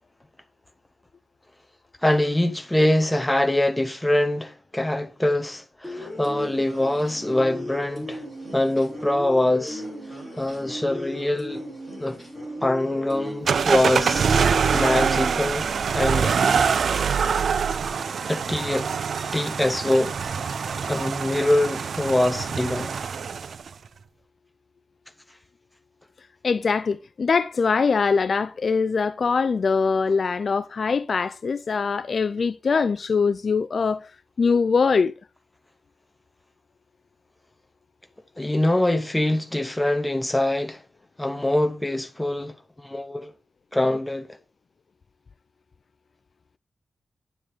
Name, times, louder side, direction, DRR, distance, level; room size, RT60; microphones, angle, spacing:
voice 1, 2.0-8.2 8.5-9.8 10.4-11.7 12.0-12.2 12.6-14.3 14.7-15.7 15.9-16.3 18.3-18.9 19.3-20.2 20.9-23.0 38.4-40.8 41.2-43.3 43.7-44.3, left 1 dB, 5° left, 0.9 m, -24 dB
sound 1, 5.8-15.1, equal, 10° right, 5.4 m, -36 dB
sound 2, 13.5-23.7, right 6 dB, 60° right, 0.4 m, -24 dB
sound 3, 13.6-21.2, right 4 dB, 85° right, 2.3 m, -41 dB
voice 2, 26.4-34.1 34.4-35.1, left 5 dB, 45° left, 0.4 m, -22 dB
9.8 x 7.2 x 3.5 m
wide cardioid pair, 155°, 0 cm